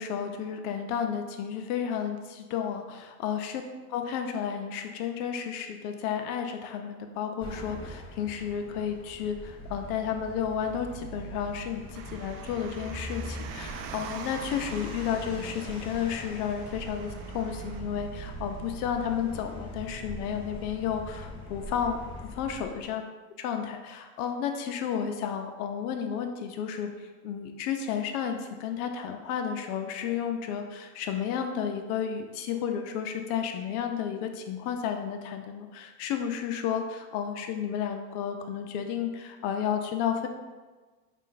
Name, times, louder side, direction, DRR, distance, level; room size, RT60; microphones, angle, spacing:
voice 1, 0.0-3.6 3.9-23.0 23.4-40.3, left 8 dB, 65° left, 5 dB, 0.7 m, -32 dB
sound 1, 7.4-22.9, equal, 10° left, 0.3 m, -42 dB
Car, 12.0-17.8, right 7 dB, 90° right, 0.5 m, -44 dB
4.2 x 2.5 x 3.8 m, 1.3 s
supercardioid pair, 140°, 49 cm